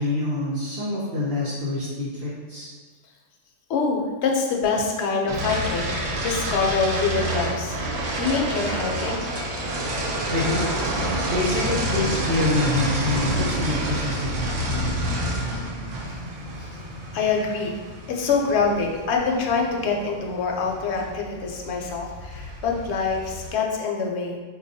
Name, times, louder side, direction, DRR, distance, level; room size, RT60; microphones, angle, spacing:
voice 1, 0.0-2.7 10.3-10.6 11.3-16.0, left 1 dB, 60° right, -7 dB, 0.8 m, -27 dB
voice 2, 3.7-7.8 8.2-9.3 16.6-16.7 17.1-17.8 18.1-24.4, left 4 dB, 70° left, 1 dB, 0.8 m, -25 dB
sound 1, 5.3-23.5, right 1 dB, 85° right, 1.0 m, -29 dB
4.3 x 2.3 x 2.6 m, 1.4 s
omnidirectional pair, 1.3 m